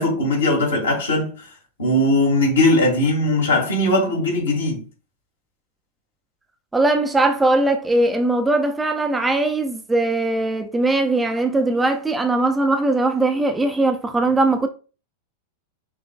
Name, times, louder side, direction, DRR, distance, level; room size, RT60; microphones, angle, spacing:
voice 1, 0.0-1.3 1.8-4.8, left 1 dB, 70° left, 1.8 m, -19 dB
voice 2, 6.7-14.7, right 2 dB, 10° right, 0.5 m, -20 dB
5.7 x 3.3 x 2.3 m
figure-of-eight pair, 90°, 0 cm